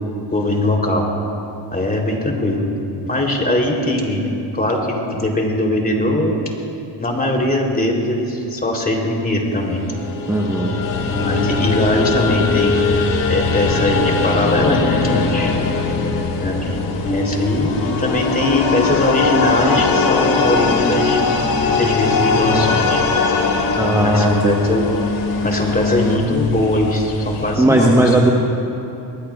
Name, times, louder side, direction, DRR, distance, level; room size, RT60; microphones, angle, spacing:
voice 1, 0.3-1.0 1.7-2.6 3.1-6.3 7.0-9.8 11.0-12.8 13.3-15.6 16.4-21.2 21.7-23.0 23.9-24.8 25.4-27.9, left 1 dB, 20° left, -1 dB, 3.5 m, -20 dB
sound 1, 9.7-26.2, left 4 dB, 45° left, 1.8 m, -20 dB
voice 2, 10.3-10.7 23.8-24.6 27.6-28.3, right 1 dB, 5° right, -1 dB, 1.3 m, -16 dB
sound 2, 10.8-27.6, left 3 dB, 85° left, 2.7 m, -33 dB
23.5 x 19.5 x 2.4 m, 2.9 s
cardioid pair, 90°, 45 cm